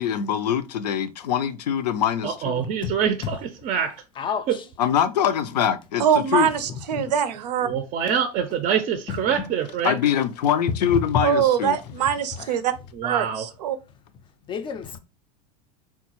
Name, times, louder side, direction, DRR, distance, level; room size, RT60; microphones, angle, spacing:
voice 1, 0.0-2.7 4.8-6.5 9.8-11.8, left 9 dB, 85° left, 0.5 m, -23 dB
voice 2, 2.2-4.0 4.5-4.6 7.6-10.0 13.0-13.5, right 8 dB, 35° right, 0.4 m, -25 dB
voice 3, 4.2-4.6 6.7-7.0 9.1-9.4 10.7-11.2 12.3-12.5 14.5-15.0, left 7 dB, 25° left, 0.4 m, -29 dB
voice 4, 6.0-7.7 11.2-12.7 13.0-13.8, right 8 dB, 85° right, 0.5 m, -23 dB
3.6 x 2.3 x 2.9 m
hypercardioid pair, 105°, 20 cm